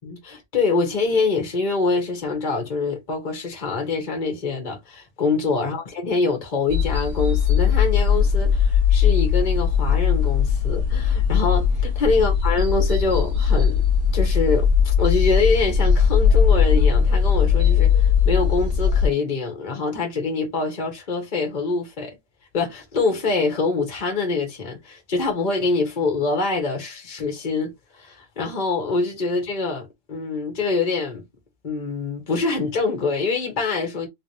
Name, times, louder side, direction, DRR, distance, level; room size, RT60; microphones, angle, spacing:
voice 1, 0.0-13.8 14.1-22.2 22.5-31.2 31.6-34.1, left 4 dB, 40° left, 1.2 m, -25 dB
sound 1, 6.7-19.1, left 7 dB, 75° right, 1.6 m, -19 dB
3.6 x 3.2 x 2.6 m
omnidirectional pair, 1.3 m